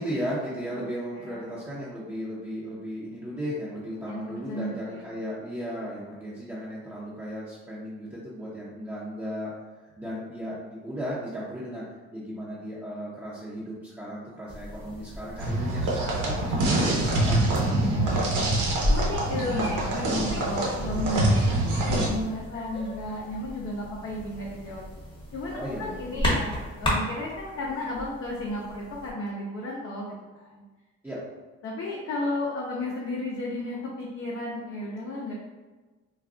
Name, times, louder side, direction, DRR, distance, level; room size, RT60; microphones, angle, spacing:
voice 1, 0.0-9.5 10.0-11.8 12.1-18.2 25.5-26.2 31.0-31.3, equal, 10° right, -9 dB, 0.7 m, -35 dB
voice 2, 0.8-1.5 4.1-5.1 17.9-21.4 21.7-24.8 25.3-30.6 31.6-35.3, left 1 dB, 50° left, -5 dB, 0.6 m, -33 dB
sound 1, 14.5-29.1, left 1 dB, 15° left, 1.0 m, -34 dB
sound 2, 15.4-22.1, right 1 dB, 85° right, 0.8 m, -25 dB
2.4 x 2.2 x 3.7 m, 1.3 s
cardioid pair, 90°, 30 cm